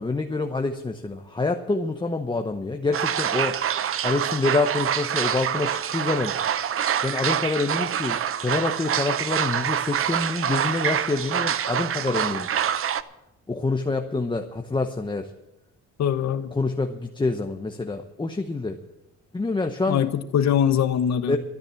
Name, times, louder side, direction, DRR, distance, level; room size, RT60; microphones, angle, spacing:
voice 1, 0.0-3.6 4.0-6.4 7.0-12.5 13.5-15.3 16.5-18.8 19.3-20.0 21.3-21.4, left 3 dB, 15° left, 5 dB, 0.8 m, -26 dB
sound 1, 2.9-13.0, right 9 dB, 45° right, 0.7 m, -26 dB
voice 2, 16.0-16.5 19.9-21.4, left 9 dB, 65° left, 11 dB, 1.1 m, -22 dB
13.5 x 9.7 x 7.0 m, 0.92 s
cardioid pair, 90°, 30 cm